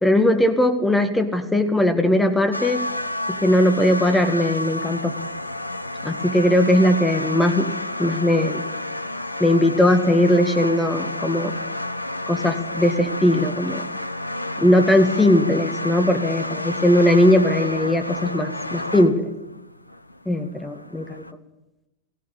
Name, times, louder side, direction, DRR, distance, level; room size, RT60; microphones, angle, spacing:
voice 1, 0.0-2.9 3.3-5.1 6.0-7.7 8.0-8.6 9.4-11.5 12.3-13.8 14.6-19.2 20.3-21.2, left 1 dB, 5° left, 8 dB, 2.0 m, -19 dB
sound 1, 2.5-21.3, left 1 dB, 85° left, 0.7 m, -30 dB
19.0 x 16.0 x 8.8 m, 0.98 s
figure-of-eight pair, 90°, 0 cm